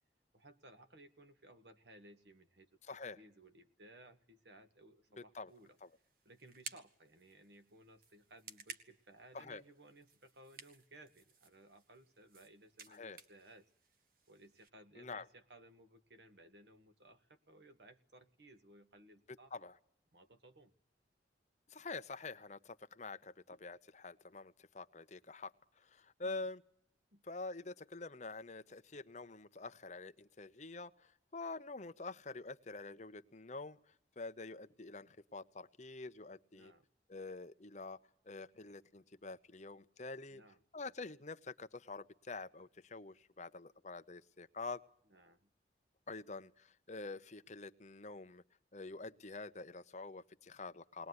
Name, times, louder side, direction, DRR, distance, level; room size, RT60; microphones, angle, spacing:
voice 1, 0.3-5.8 6.3-13.7 14.3-19.7 20.1-20.7 26.2-26.4 27.1-27.2 36.5-36.9 40.3-40.6 40.9-41.0 45.1-45.5, right 1 dB, 70° right, 8 dB, 2.0 m, -60 dB
voice 2, 2.9-3.2 5.3-5.5 5.8-5.9 9.3-9.6 12.9-13.2 15.0-15.2 19.5-19.7 21.7-25.5 25.8-26.6 27.3-33.8 34.2-36.7 37.1-38.0 38.3-40.4 40.7-44.8 46.1-48.4 48.7-51.1, left 3 dB, 40° left, 11 dB, 0.9 m, -47 dB
sound 1, 5.5-14.7, right 5 dB, 55° right, 1.7 m, -56 dB
20.0 x 20.0 x 9.7 m, 0.63 s
head